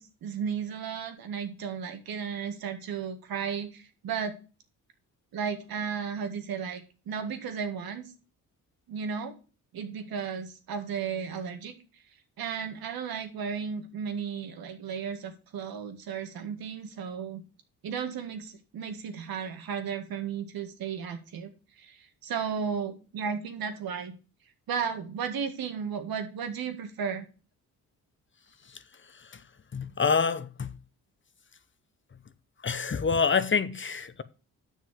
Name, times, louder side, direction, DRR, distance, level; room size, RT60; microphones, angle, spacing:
voice 1, 0.0-4.4 5.3-8.1 8.9-9.3 9.7-11.8 12.4-17.4 17.8-24.1 24.7-27.3, right 6 dB, 75° right, 2.0 m, -34 dB
voice 2, 29.7-30.8 32.6-34.2, left 5 dB, 35° left, 0.8 m, -27 dB
7.2 x 6.1 x 7.2 m
cardioid pair, 70°, 36 cm